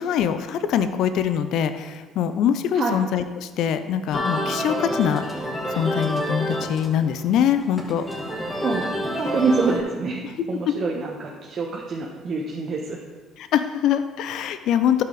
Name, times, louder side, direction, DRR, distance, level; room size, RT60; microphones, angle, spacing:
voice 1, 0.0-5.2 5.7-8.1 10.2-10.7 13.4-15.0, left 9 dB, 65° left, 11 dB, 0.5 m, -23 dB
sound 1, 4.1-9.8, equal, 20° left, 2.2 m, -28 dB
voice 2, 8.6-10.2 10.5-13.0, right 4 dB, 50° right, -2 dB, 1.0 m, -26 dB
11.5 x 5.7 x 3.9 m, 1.4 s
hypercardioid pair, 65°, 0 cm